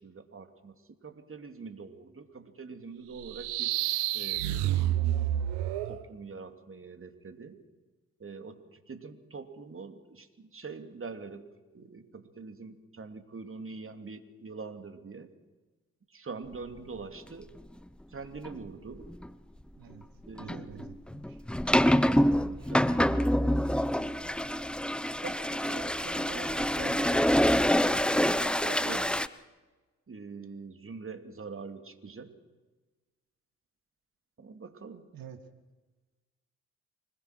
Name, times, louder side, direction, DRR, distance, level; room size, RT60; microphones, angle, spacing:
voice 1, 0.0-3.7 4.1-5.0 5.9-7.6 8.2-11.5 11.7-15.3 16.1-17.5 18.1-19.1 20.3-20.9 22.2-24.1 24.8-24.9 25.2-27.3 27.9-29.1 30.1-32.3 34.4-35.1, right 4 dB, 30° right, 7 dB, 2.9 m, -44 dB
sound 1, 3.2-6.0, right 13 dB, 70° right, 1.1 m, -29 dB
sound 2, 18.4-18.6 19.0-19.3 20.4-29.3, equal, ahead, 0.9 m, -26 dB
voice 2, 20.4-21.4 35.1-35.4, right 8 dB, 55° right, 8 dB, 2.3 m, -48 dB
25.0 x 21.5 x 6.2 m, 1.2 s
hypercardioid pair, 45°, 41 cm